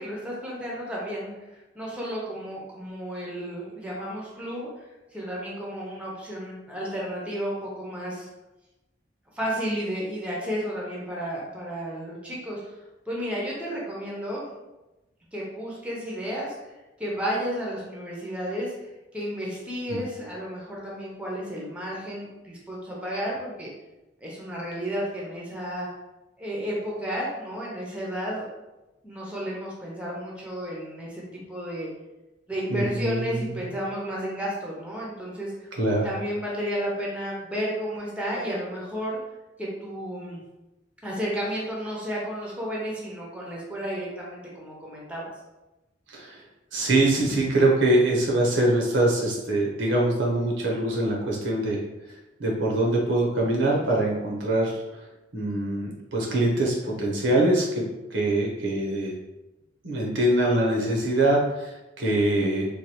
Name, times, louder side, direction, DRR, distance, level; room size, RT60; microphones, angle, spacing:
voice 1, 0.0-1.3 1.7-8.3 9.3-12.8 13.1-14.5 15.3-16.5 17.0-18.9 19.1-23.7 24.2-25.9 26.4-28.5 29.0-31.9 32.5-35.7 36.0-39.2 39.6-40.4 41.0-45.3, equal, 5° right, -4 dB, 0.6 m, -32 dB
voice 2, 32.7-33.7 35.8-36.1 46.1-46.4 46.7-51.8 52.4-54.8 55.3-57.7 58.1-59.1 59.8-62.7, right 1 dB, 80° right, -2 dB, 0.8 m, -23 dB
3.1 x 2.2 x 2.8 m, 1.0 s
head